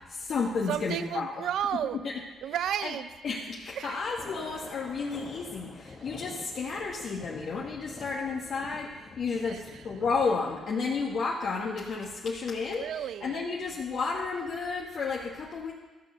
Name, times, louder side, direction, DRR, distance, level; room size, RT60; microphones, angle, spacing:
voice 1, 0.1-1.5 2.0-2.1 2.8-2.9 3.2-12.9 13.2-15.7, left 4 dB, 60° left, -3 dB, 1.4 m, -32 dB
voice 2, 0.7-2.0 2.4-3.1 3.8-4.0 9.4-9.6 12.8-13.4, right 10 dB, 75° right, 14 dB, 0.5 m, -32 dB
Thunder, 4.1-10.3, left 4 dB, 40° left, 1.3 m, -47 dB
13.0 x 6.5 x 6.7 m, 1.2 s
cardioid pair, 90°, 0 cm